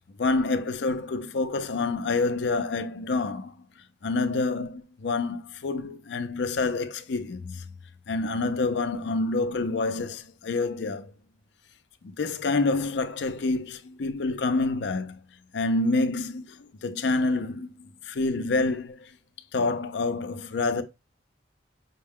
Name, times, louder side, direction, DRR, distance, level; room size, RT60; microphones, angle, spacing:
voice 1, 0.2-3.7 4.0-7.7 8.1-11.1 12.0-15.2 15.5-19.1 19.5-20.8, left 3 dB, 75° left, 0.5 m, -27 dB
5.5 x 2.1 x 3.5 m
head